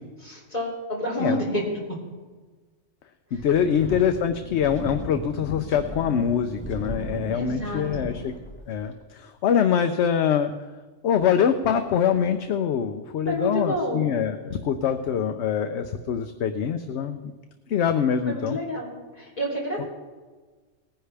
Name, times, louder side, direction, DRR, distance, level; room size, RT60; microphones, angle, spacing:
voice 1, 0.2-1.6 1.9-2.0 7.3-8.1 13.2-14.0 18.3-19.9, equal, 30° left, -4 dB, 3.5 m, -29 dB
voice 2, 3.3-8.3 8.7-10.5 11.0-17.2 17.7-18.6, left 8 dB, 65° left, 8 dB, 0.9 m, -24 dB
Wind, 3.3-8.9, equal, 10° left, 2.3 m, -37 dB
19.0 x 10.5 x 3.4 m, 1.3 s
omnidirectional pair, 1.3 m